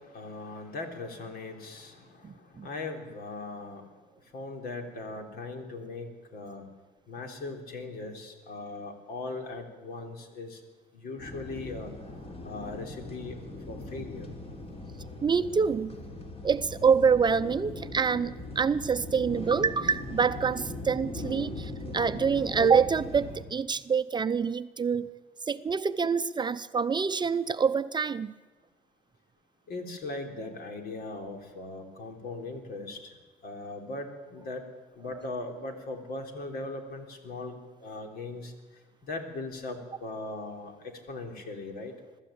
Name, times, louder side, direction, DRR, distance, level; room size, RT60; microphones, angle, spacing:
voice 1, 0.0-3.9 4.3-6.7 7.1-10.6 10.9-12.0 12.4-13.4 13.7-14.3 29.7-34.7 34.9-38.5 39.0-41.9, left 2 dB, 65° left, 4 dB, 3.6 m, -39 dB
voice 2, 2.2-2.7 15.2-15.9 16.4-25.1 25.5-28.3, right 6 dB, 25° right, 11 dB, 0.6 m, -26 dB
sound 1, 11.2-23.4, left 2 dB, 35° left, 3.6 m, -40 dB
22.5 x 13.5 x 8.7 m, 1.3 s
cardioid pair, 110°, 17 cm